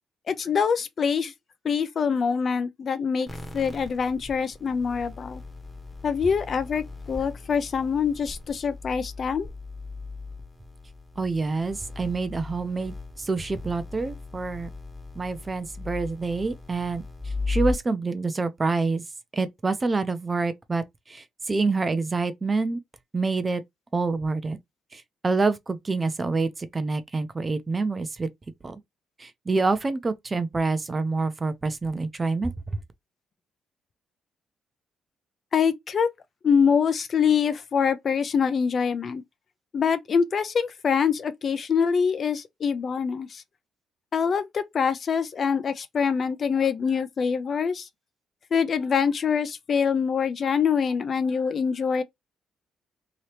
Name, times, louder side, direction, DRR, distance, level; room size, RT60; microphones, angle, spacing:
voice 1, 0.3-1.3 1.6-3.3 3.5-5.4 6.0-9.5 35.5-36.1 36.4-39.2 39.7-43.4 44.1-47.9 48.5-52.0, left 6 dB, 50° left, 0.5 m, -24 dB
sound 1, 3.3-17.7, left 3 dB, 10° left, 1.0 m, -37 dB
voice 2, 11.2-14.7 15.2-17.0 17.5-19.0 19.3-22.8 23.1-23.6 23.9-24.6 24.9-28.3 28.6-28.8 29.2-32.5, right 3 dB, 25° right, 0.6 m, -27 dB
2.9 x 2.8 x 3.2 m
cardioid pair, 90°, 0 cm